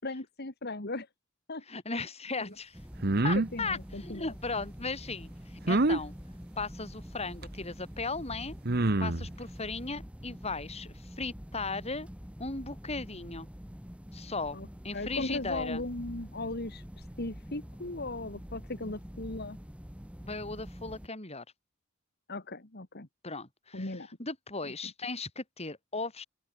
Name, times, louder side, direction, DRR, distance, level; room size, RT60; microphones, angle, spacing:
voice 1, 0.0-1.1 1.5-1.6 3.3-4.3 14.5-14.7 14.9-19.6 22.3-23.1 23.7-24.1, left 2 dB, 50° left, 2.3 m, -37 dB
voice 2, 1.7-2.8 3.2-6.1 6.6-8.6 9.0-12.1 12.4-13.5 14.1-14.6 14.8-15.8 20.2-21.4 23.2-26.2, left 3 dB, 30° left, 5.8 m, -37 dB
sound 1, 2.7-21.1, equal, 5° right, 1.9 m, -46 dB
sound 2, 3.0-3.5 5.7-6.0 7.4-7.5 8.7-9.3, right 2 dB, 50° right, 1.3 m, -26 dB
open air
head